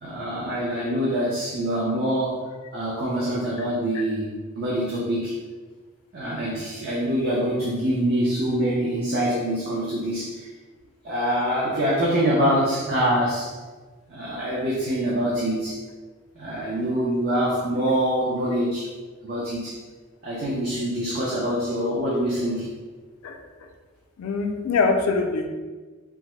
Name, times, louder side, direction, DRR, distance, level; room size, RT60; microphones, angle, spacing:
voice 1, 0.0-2.4 2.7-5.3 6.1-10.5 11.0-13.5 14.1-15.8 16.4-18.9 19.2-19.8 20.2-22.7, equal, 45° right, -6 dB, 0.5 m, -25 dB
voice 2, 24.2-25.5, left 4 dB, 85° left, 4 dB, 0.4 m, -23 dB
3.3 x 2.0 x 3.0 m, 1.4 s
head